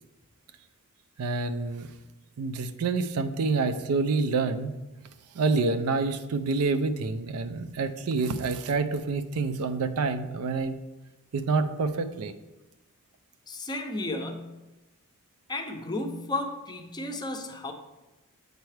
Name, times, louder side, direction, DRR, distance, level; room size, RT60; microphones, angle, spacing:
voice 1, 1.2-1.9 2.4-4.7 5.3-10.8 11.3-12.3, right 4 dB, 90° right, 10 dB, 0.4 m, -27 dB
voice 2, 13.5-14.5 15.5-17.7, left 2 dB, 20° left, 5 dB, 0.5 m, -33 dB
8.0 x 4.5 x 3.2 m, 1.1 s
head